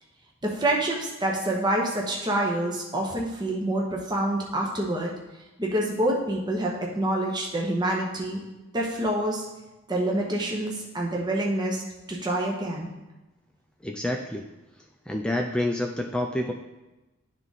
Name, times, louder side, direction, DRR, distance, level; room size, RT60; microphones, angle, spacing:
voice 1, 0.4-5.1 5.6-8.4 8.7-9.5 9.9-11.8 12.1-12.9, right 1 dB, 20° right, -2 dB, 0.9 m, -27 dB
voice 2, 13.8-14.5 15.1-16.5, left 1 dB, 5° left, 2 dB, 0.4 m, -28 dB
10.5 x 3.6 x 4.0 m, 1.0 s
head